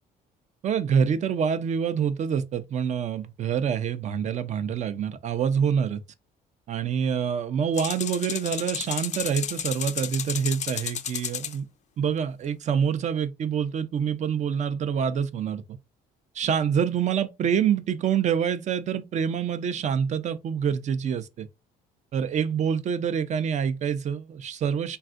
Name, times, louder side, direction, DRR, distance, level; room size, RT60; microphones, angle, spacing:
voice 1, 0.6-6.0 6.7-11.6 12.0-15.6 16.3-21.5 22.1-25.0, right 7 dB, 45° right, 0.5 m, -26 dB
sound 1, 7.8-11.6, left 9 dB, 45° left, 0.4 m, -32 dB
3.3 x 2.4 x 2.4 m
cardioid pair, 110°, 17 cm